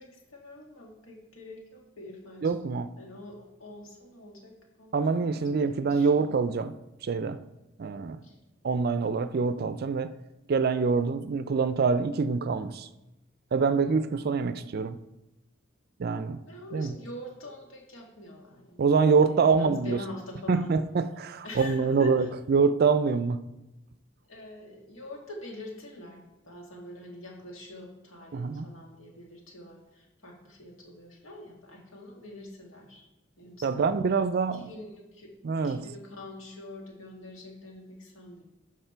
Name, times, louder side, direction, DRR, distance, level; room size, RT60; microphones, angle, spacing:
voice 1, 0.0-2.5 3.0-6.4 8.2-8.4 16.4-18.8 19.2-20.8 21.4-22.3 24.3-33.0 33.4-33.9 34.5-38.4, left 1 dB, 85° left, 2.1 m, -45 dB
voice 2, 2.4-2.9 4.9-6.8 7.0-7.4 7.8-8.2 8.6-10.1 10.5-12.9 13.5-15.0 16.0-16.4 16.7-17.0 18.8-20.0 20.5-23.4 28.3-28.7 33.6-34.7 35.4-35.8, right 5 dB, 50° right, 0.4 m, -25 dB
12.5 x 4.9 x 4.5 m
head